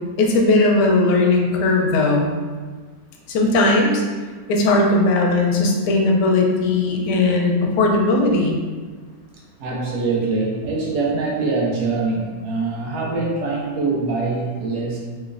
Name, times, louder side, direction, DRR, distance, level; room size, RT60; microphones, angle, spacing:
voice 1, 0.2-2.3 3.3-4.0 4.5-8.6, left 2 dB, 75° left, 0 dB, 1.1 m, -18 dB
voice 2, 9.6-15.0, right 3 dB, 70° right, -3 dB, 1.1 m, -23 dB
3.0 x 3.0 x 2.4 m, 1.4 s
omnidirectional pair, 1.9 m